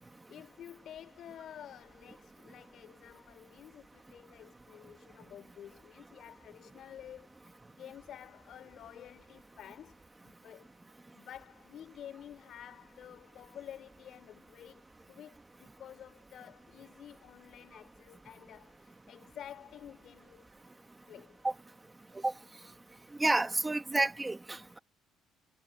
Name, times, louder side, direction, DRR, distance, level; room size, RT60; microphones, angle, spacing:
voice 1, 0.3-10.8 11.1-20.4 21.1-21.4, left 10 dB, 50° left, 5.6 m, -51 dB
voice 2, 23.2-24.8, right 2 dB, 10° right, 1.5 m, -30 dB
cardioid pair, 155°, 0 cm